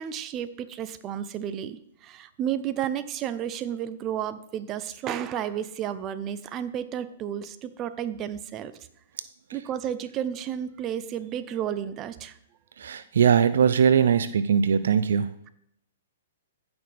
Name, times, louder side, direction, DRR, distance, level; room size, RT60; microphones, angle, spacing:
voice 1, 0.0-8.7 9.5-12.4, right 10 dB, 30° right, 12 dB, 0.7 m, -32 dB
voice 2, 12.8-15.3, right 7 dB, 75° right, 14 dB, 0.5 m, -21 dB
15.5 x 6.1 x 3.4 m, 0.73 s
hypercardioid pair, 125°, 0 cm